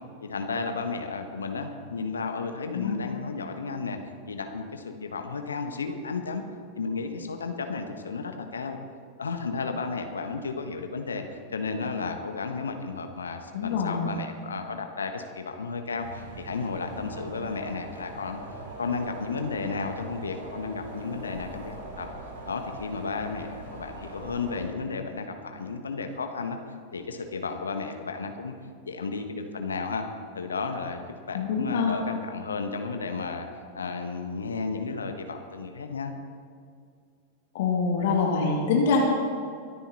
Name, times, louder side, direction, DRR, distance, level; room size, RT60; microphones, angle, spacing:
voice 1, 0.2-4.0 4.3-6.4 6.7-8.8 9.2-18.4 18.8-22.1 22.5-26.6 26.9-28.5 28.8-30.1 30.3-33.5 33.7-36.1, left 4 dB, 70° left, 6 dB, 1.2 m, -33 dB
voice 2, 13.5-14.1 31.3-31.9 37.5-39.0, left 5 dB, 55° left, 0 dB, 2.2 m, -25 dB
sound 1, 16.0-24.6, right 1 dB, 55° right, 3.8 m, -42 dB
23.5 x 10.0 x 4.2 m, 2.3 s
figure-of-eight pair, 90°, 0 cm